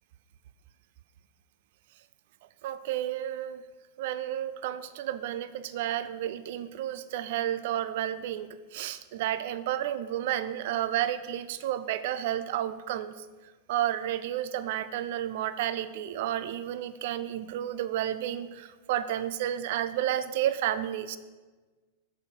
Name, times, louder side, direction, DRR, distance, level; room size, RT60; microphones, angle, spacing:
voice 1, 2.6-3.6 4.0-13.3 13.7-21.2, right 11 dB, 50° right, 13 dB, 0.5 m, -31 dB
6.8 x 6.4 x 7.7 m, 1.3 s
figure-of-eight pair, 90°, 0 cm